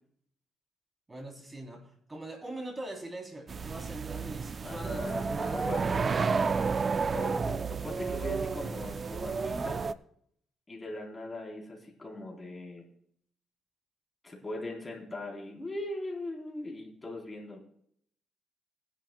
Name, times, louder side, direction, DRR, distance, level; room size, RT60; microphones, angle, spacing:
voice 1, 1.1-6.0, right 1 dB, 20° right, 1 dB, 3.3 m, -42 dB
sound 1, 3.5-9.9, right 5 dB, 40° right, 0.4 m, -31 dB
voice 2, 4.6-6.2 7.1-9.9 10.7-12.8 14.2-17.6, left 2 dB, 25° left, -1 dB, 3.8 m, -40 dB
20.0 x 11.0 x 2.3 m, 0.68 s
cardioid pair, 105°, 0 cm